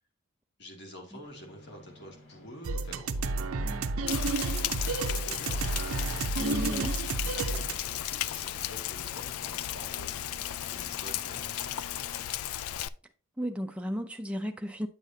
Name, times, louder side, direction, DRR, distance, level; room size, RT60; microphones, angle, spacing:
voice 1, 0.6-3.9 4.4-7.2 7.5-11.6, equal, 50° left, 2.1 m, -49 dB
sound 1, 1.2-12.3, left 1 dB, 70° left, 1.9 m, -54 dB
sound 2, 2.6-7.7, right 3 dB, 80° right, 0.7 m, -31 dB
voice 2, 3.6-3.9 6.4-7.0 13.4-14.9, equal, 5° right, 0.4 m, -34 dB
Rain, 4.1-12.9, left 12 dB, 85° left, 0.4 m, -35 dB
9.1 x 6.6 x 2.7 m
head